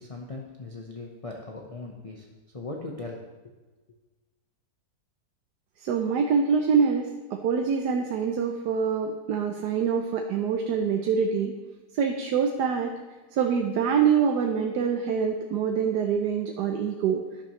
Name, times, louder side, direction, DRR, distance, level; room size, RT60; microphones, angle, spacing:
voice 1, 0.0-2.3 2.5-3.2, left 2 dB, 25° left, -1 dB, 0.9 m, -39 dB
voice 2, 5.8-11.5 12.0-12.9 13.3-17.2, right 6 dB, 85° right, 4 dB, 1.4 m, -25 dB
12.0 x 10.5 x 3.2 m, 1.3 s
omnidirectional pair, 1.7 m